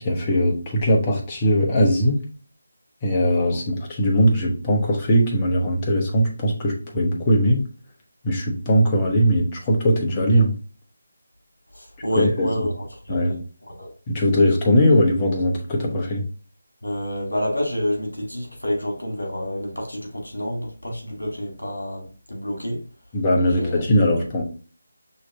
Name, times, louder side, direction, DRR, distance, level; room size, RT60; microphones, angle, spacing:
voice 1, 0.0-2.2 3.0-7.6 8.2-10.6 12.2-12.7 13.1-13.3 14.1-16.2 23.1-24.4, equal, 20° left, 1.0 m, -20 dB
voice 2, 11.7-13.9 16.8-22.8 23.4-23.8, equal, 75° left, 2.1 m, -28 dB
6.3 x 3.0 x 2.6 m
figure-of-eight pair, 155°, 0 cm